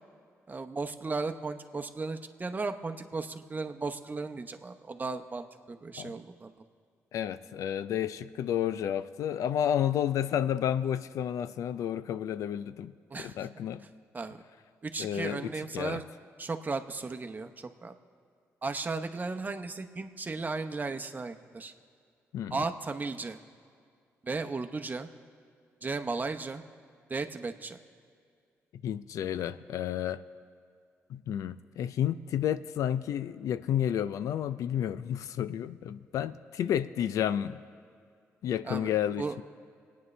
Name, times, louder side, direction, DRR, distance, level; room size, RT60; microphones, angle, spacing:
voice 1, 0.5-6.5 13.1-13.5 14.1-14.4 14.8-16.0 16.4-17.9 18.6-21.7 22.5-23.4 24.2-25.1 25.8-26.6 27.1-27.8 38.6-39.4, right 3 dB, 30° right, 6 dB, 0.9 m, -35 dB
voice 2, 7.1-13.8 15.0-16.0 22.3-22.6 28.7-30.2 31.1-37.6 38.4-39.4, left 10 dB, 80° left, 14 dB, 0.4 m, -31 dB
25.0 x 9.4 x 3.3 m, 2.3 s
supercardioid pair, 60°, 6 cm